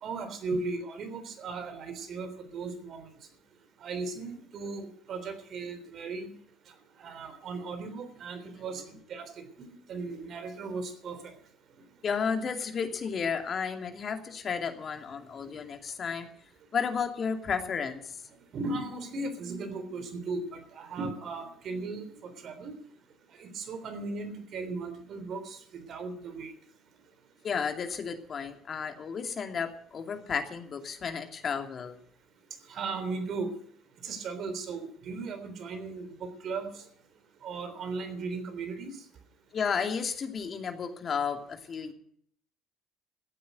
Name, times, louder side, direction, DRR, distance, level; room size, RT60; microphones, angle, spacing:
voice 1, 0.0-3.1 3.8-6.3 7.0-8.8 9.1-11.3 15.4-15.5 18.5-22.7 23.4-26.5 32.7-33.5 34.0-36.8 37.4-39.0, right 3 dB, 55° right, 9 dB, 3.4 m, -37 dB
voice 2, 12.0-16.3 16.7-18.2 27.4-32.0 39.5-41.9, left 6 dB, 45° left, 6 dB, 2.5 m, -32 dB
14.5 x 8.7 x 9.1 m, 0.62 s
hypercardioid pair, 65°, 0 cm